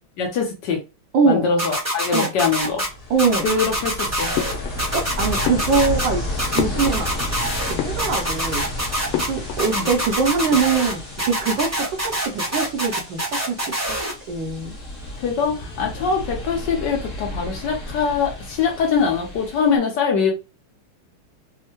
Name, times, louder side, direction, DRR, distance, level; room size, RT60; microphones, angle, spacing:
voice 1, 0.2-0.8 1.3-2.8 3.4-4.3 9.7-9.9 15.2-20.3, left 5 dB, 70° left, 1.2 m, -23 dB
voice 2, 1.1-1.5 2.1-2.3 3.1-3.6 4.9-6.2 6.5-7.1 7.8-8.6 9.2-13.7 14.3-14.7, right 5 dB, 75° right, 1.2 m, -22 dB
sound 1, 1.6-2.9 3.2-4.5 4.8-6.1 6.4-7.7 8.0-9.3 9.6-10.9 11.2-14.1, right 1 dB, 20° right, 0.4 m, -25 dB
Ocean, 2.6-19.8, left 1 dB, 35° left, 1.0 m, -32 dB
sound 2, 4.3-5.1 5.4-7.4 7.7-8.5 9.1-9.7 10.0-10.1 10.4-11.1, left 11 dB, 90° left, 1.5 m, -30 dB
3.5 x 2.1 x 2.7 m
omnidirectional pair, 2.3 m